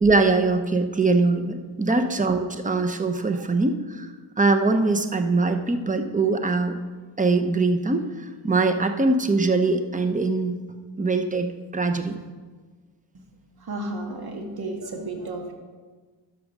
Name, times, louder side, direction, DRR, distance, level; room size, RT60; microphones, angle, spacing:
voice 1, 0.0-6.8 7.2-10.6 11.0-12.1, right 3 dB, 15° right, 7 dB, 0.8 m, -22 dB
voice 2, 13.6-15.5, right 2 dB, 55° right, 3 dB, 1.6 m, -33 dB
12.0 x 6.4 x 5.3 m, 1.4 s
cardioid pair, 80°, 45 cm